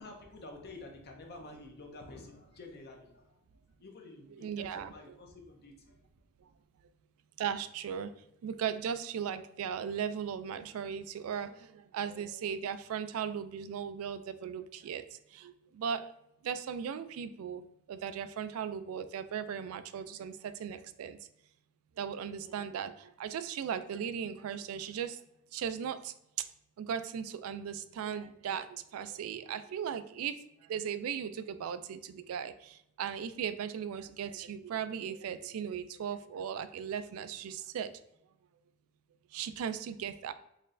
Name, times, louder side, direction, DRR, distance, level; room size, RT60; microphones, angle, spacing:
voice 1, 0.0-6.0, left 2 dB, 50° left, 2 dB, 0.7 m, -50 dB
voice 2, 4.4-4.9 7.4-8.1 8.4-15.0 15.3-16.1 16.4-17.6 17.9-21.2 22.0-25.2 25.5-26.1 26.8-30.4 30.7-37.9 39.3-40.3, right 8 dB, 75° right, 12 dB, 0.3 m, -37 dB
4.1 x 3.1 x 2.5 m, 0.79 s
head